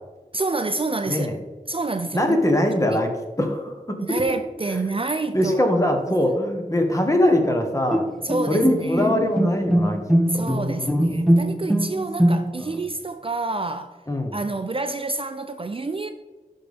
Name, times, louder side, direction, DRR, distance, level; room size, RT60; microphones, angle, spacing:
voice 1, 0.3-1.3 1.7-2.4 2.9-3.0 4.0-5.9 6.2-6.3 8.2-9.1 10.3-14.0 14.3-16.1, right 3 dB, 40° right, 0.4 m, -28 dB
voice 2, 2.1-3.1 3.4-4.0 4.7-4.8 5.3-8.0 8.5-10.0 10.3-10.4 10.8-11.6 12.6-12.7 14.1-14.4, left 1 dB, 20° left, 1.2 m, -22 dB
Bowed string instrument, 7.9-12.8, equal, ahead, 0.7 m, -21 dB
11.5 x 4.0 x 3.5 m
wide cardioid pair, 55°, 15 cm